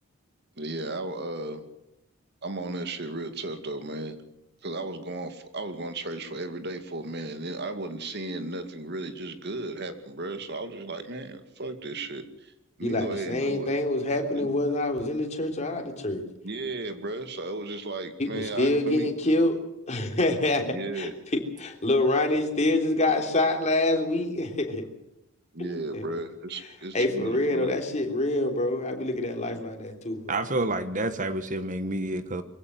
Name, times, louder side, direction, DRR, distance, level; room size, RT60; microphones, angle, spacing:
voice 1, 0.6-1.6 2.4-4.2 4.6-12.5 12.8-13.7 14.3-14.5 16.4-19.1 20.6-21.1 25.5-27.8, right 2 dB, 55° right, 9 dB, 2.4 m, -35 dB
voice 2, 12.8-16.2 18.2-19.6 19.9-20.7 20.9-24.9 25.9-26.0 26.9-30.4, left 2 dB, 35° left, 4 dB, 3.3 m, -26 dB
voice 3, 30.3-32.4, right 2 dB, 40° right, 11 dB, 1.3 m, -29 dB
23.5 x 16.5 x 7.8 m, 0.86 s
head